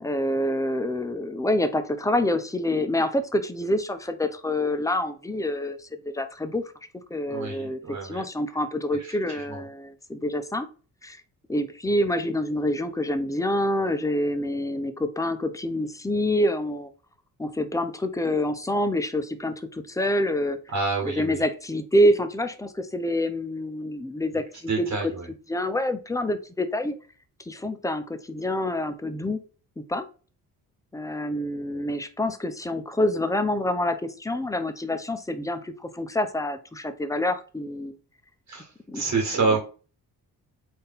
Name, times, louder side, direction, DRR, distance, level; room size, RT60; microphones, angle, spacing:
voice 1, 0.0-6.6 7.1-10.7 11.0-11.2 11.5-16.9 17.4-20.6 21.0-25.1 25.5-26.9 27.5-29.4 29.8-30.1 30.9-38.0 38.9-39.0, left 1 dB, 10° left, 10 dB, 0.6 m, -27 dB
voice 2, 7.3-8.2 9.0-9.6 20.7-21.4 24.7-25.3 38.5-38.7 38.9-39.6, right 4 dB, 45° right, 1 dB, 1.4 m, -28 dB
3.8 x 2.7 x 3.6 m, 0.36 s
supercardioid pair, 60°, 38 cm